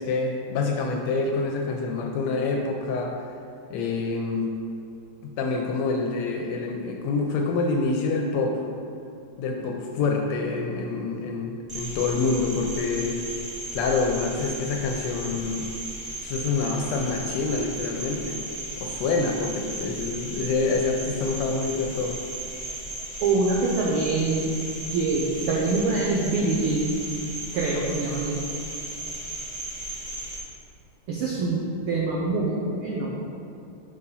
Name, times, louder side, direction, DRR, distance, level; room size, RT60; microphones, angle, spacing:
voice 1, 0.0-3.1 3.7-4.5 5.2-8.6 9.4-13.2 13.7-15.7 16.2-18.4 18.8-22.2, left 4 dB, 80° left, 2 dB, 1.6 m, -26 dB
Cricket, 11.7-30.4, right 1 dB, 75° right, 0.3 m, -35 dB
voice 2, 23.2-24.5 24.9-27.0 27.5-28.4 31.1-33.2, right 3 dB, 90° right, -4 dB, 1.2 m, -25 dB
5.7 x 4.8 x 5.4 m, 2.6 s
omnidirectional pair, 3.4 m